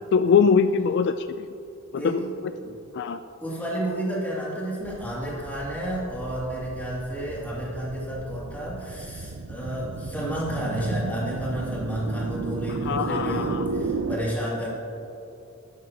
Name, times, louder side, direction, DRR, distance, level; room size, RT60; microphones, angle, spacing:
voice 1, 0.1-1.5 2.0-2.1 2.9-3.2 12.8-13.7, left 6 dB, 55° left, 11 dB, 0.3 m, -22 dB
voice 2, 2.0-2.7 3.4-14.7, right 1 dB, 10° left, -5 dB, 2.6 m, -31 dB
sound 1, 4.8-14.2, right 3 dB, 90° right, 0.6 m, -33 dB
13.5 x 12.0 x 3.0 m, 2.7 s
head